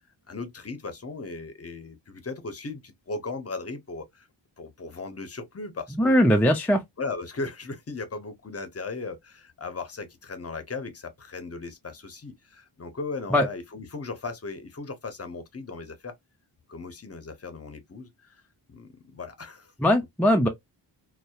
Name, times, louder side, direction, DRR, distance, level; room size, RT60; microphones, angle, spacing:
voice 1, 0.3-4.3 4.6-6.1 7.0-16.1 16.7-18.4 18.7-19.7, left 3 dB, 35° left, 0.7 m, -37 dB
voice 2, 6.0-6.8 13.3-13.5 19.8-20.5, equal, 5° left, 0.4 m, -20 dB
2.7 x 2.1 x 2.2 m
cardioid pair, 60°, 45 cm